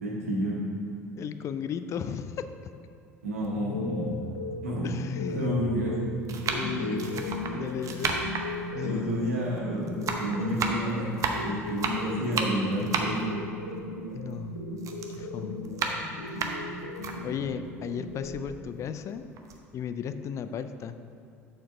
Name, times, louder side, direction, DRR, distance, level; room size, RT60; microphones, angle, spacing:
voice 1, 0.0-0.6 3.2-4.2 4.6-4.9 5.3-6.0 6.7-7.0 8.8-11.1 11.4-13.3, equal, 80° right, -4 dB, 1.5 m, -30 dB
voice 2, 1.2-2.5 4.8-5.5 6.5-7.3 7.5-8.1 8.7-9.2 14.1-14.6 15.2-15.6 16.3-16.6 17.2-19.2 19.7-21.0, left 7 dB, 40° left, 10 dB, 0.4 m, -35 dB
sound 1, 3.4-3.6 4.4-4.5 5.5-5.8 6.3-9.6 9.9-14.5 14.8-17.2 17.7-17.8 18.1-19.0 19.4-19.6, right 5 dB, 45° right, 0.8 m, -33 dB
sound 2, 3.5-18.5, left 2 dB, 85° left, 0.8 m, -37 dB
7.3 x 4.4 x 5.6 m, 2.4 s
figure-of-eight pair, 65°, 8 cm